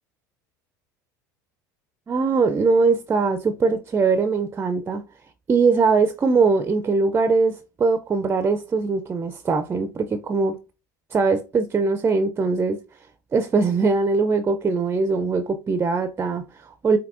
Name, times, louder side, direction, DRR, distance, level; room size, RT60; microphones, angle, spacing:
voice 1, 2.1-5.0 5.5-10.6 11.1-12.8 13.3-17.0, right 4 dB, 20° right, 0.4 m, -21 dB
5.2 x 2.7 x 2.5 m
hypercardioid pair, 80°, 10 cm